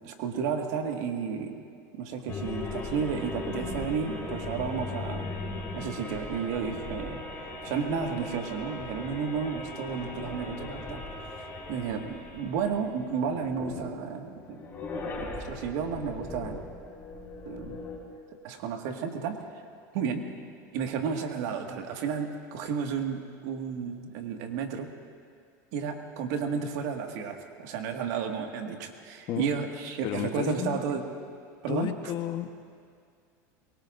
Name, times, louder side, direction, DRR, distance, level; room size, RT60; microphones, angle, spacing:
voice 1, 0.0-1.6 1.9-5.3 5.7-11.0 11.3-14.6 15.2-16.6 17.4-17.8 18.4-19.4 19.9-20.3 20.7-24.9 25.7-31.0 31.6-31.9, right 6 dB, 70° right, 3 dB, 1.9 m, -32 dB
sound 1, 2.3-14.0 14.3-18.0, left 3 dB, 20° left, 5.4 m, -38 dB
voice 2, 30.0-30.8 31.7-32.5, left 11 dB, 50° left, 7 dB, 1.2 m, -32 dB
23.5 x 23.0 x 2.6 m, 2.3 s
supercardioid pair, 115°, 10 cm